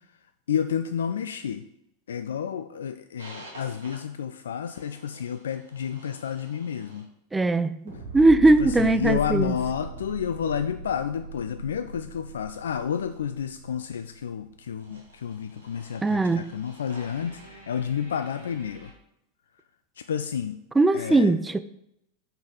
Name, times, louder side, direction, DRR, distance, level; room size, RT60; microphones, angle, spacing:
voice 1, 0.5-1.6 2.1-7.1 8.6-18.9 20.0-20.6 20.9-21.3, left 8 dB, 80° left, 9 dB, 0.3 m, -30 dB
sound 1, 3.2-4.0 4.6-7.0 7.9-18.9, left 1 dB, 85° right, 1.7 m, -42 dB
voice 2, 7.3-7.8 8.1-9.6 16.0-16.5 20.8-21.6, right 2 dB, 10° right, 13 dB, 0.3 m, -20 dB
6.0 x 4.0 x 5.1 m, 0.81 s
hypercardioid pair, 95°, 0 cm